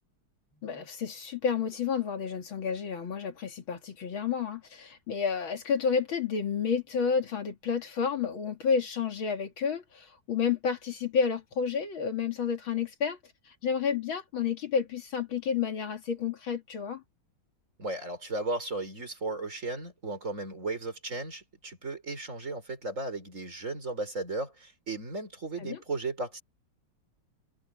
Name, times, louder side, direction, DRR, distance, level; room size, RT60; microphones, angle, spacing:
voice 1, 0.6-13.2 13.6-17.0 25.6-25.8, left 6 dB, 70° left, 3.0 m, -30 dB
voice 2, 17.8-26.4, right 2 dB, 35° right, 4.6 m, -35 dB
omnidirectional pair, 2.3 m